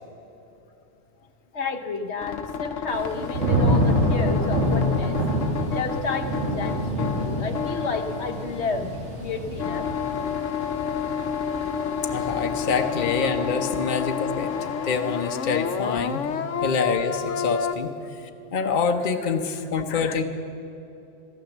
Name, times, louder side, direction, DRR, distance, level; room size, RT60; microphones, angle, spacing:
voice 1, 1.5-5.2 5.7-9.9 17.3-17.4, left 4 dB, 65° left, 6 dB, 1.2 m, -31 dB
sound 1, 2.2-9.1 9.6-17.7, left 7 dB, 80° left, 1.1 m, -30 dB
Thunder / Rain, 2.9-13.8 14.2-14.7, equal, 70° right, 2.9 m, -27 dB
voice 2, 12.1-16.2 16.6-20.2, left 5 dB, 45° left, 5 dB, 1.0 m, -26 dB
14.5 x 13.0 x 7.2 m, 2.9 s
omnidirectional pair, 1.3 m